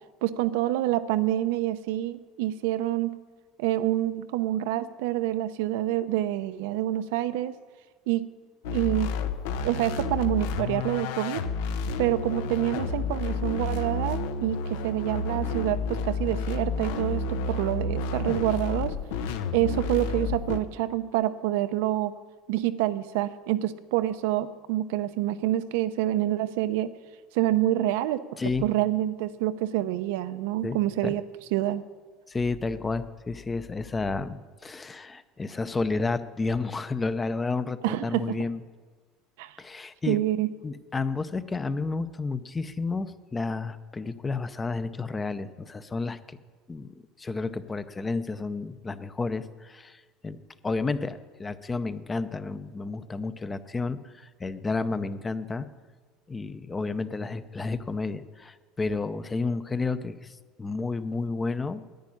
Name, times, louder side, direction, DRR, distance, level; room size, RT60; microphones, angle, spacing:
voice 1, 0.2-3.2 3.6-7.5 8.1-8.3 8.7-9.1 9.6-11.5 12.0-19.0 19.5-22.1 22.5-26.9 27.3-28.2 28.6-31.2 31.5-31.8 37.8-38.3 39.4-39.6 40.1-40.5, right 14 dB, 85° right, 11 dB, 0.7 m, -27 dB
sound 1, 8.6-20.6, left 4 dB, 85° left, 0.9 m, -30 dB
voice 2, 32.3-38.6 39.6-40.2 40.6-46.4 46.7-50.4 50.6-55.7 56.3-61.8, left 3 dB, 15° left, 13 dB, 0.6 m, -31 dB
10.5 x 9.6 x 10.0 m, 1.4 s
cardioid pair, 135°, 0 cm